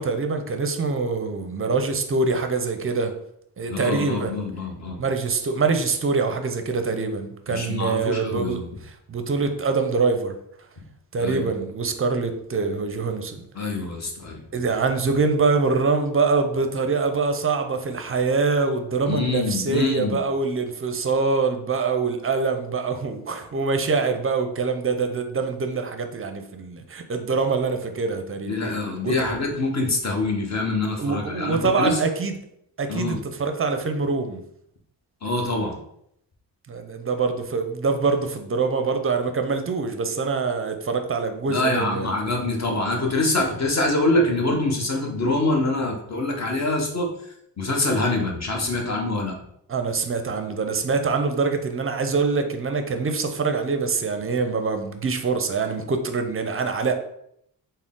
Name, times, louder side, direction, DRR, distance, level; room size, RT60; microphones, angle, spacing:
voice 1, 0.0-3.1 3.6-4.4 5.0-10.4 11.1-13.4 14.5-28.5 29.0-29.1 31.0-32.4 32.8-34.4 36.7-42.1 49.7-56.9, right 4 dB, 30° right, 7 dB, 0.5 m, -24 dB
voice 2, 3.7-5.0 7.5-8.7 11.2-11.5 13.5-14.4 19.1-20.2 28.5-32.0 32.9-33.2 35.2-35.8 41.5-47.1 47.6-49.3, left 2 dB, 35° left, 1 dB, 1.0 m, -25 dB
3.7 x 2.1 x 3.6 m, 0.73 s
cardioid pair, 60°, 45 cm